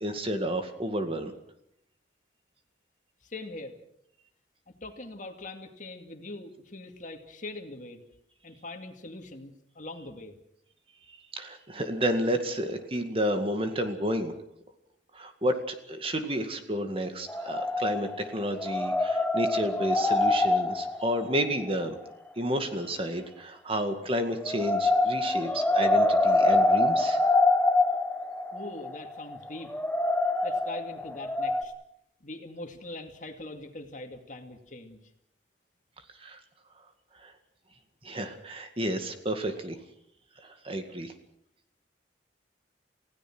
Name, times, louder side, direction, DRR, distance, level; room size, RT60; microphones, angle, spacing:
voice 1, 0.0-1.3 11.3-14.3 15.1-22.0 22.4-27.2 36.2-36.4 37.2-37.3 38.0-39.8 40.4-41.1, equal, 30° right, 6 dB, 2.1 m, -31 dB
voice 2, 3.2-3.8 4.7-8.0 8.4-10.3 28.5-29.7 30.4-31.7 32.2-35.0, left 2 dB, 45° left, 5 dB, 2.3 m, -42 dB
sound 1, 17.3-18.3 18.6-21.7 24.4-31.6, left 2 dB, 10° left, 1.2 m, -25 dB
29.5 x 17.0 x 6.2 m, 0.75 s
head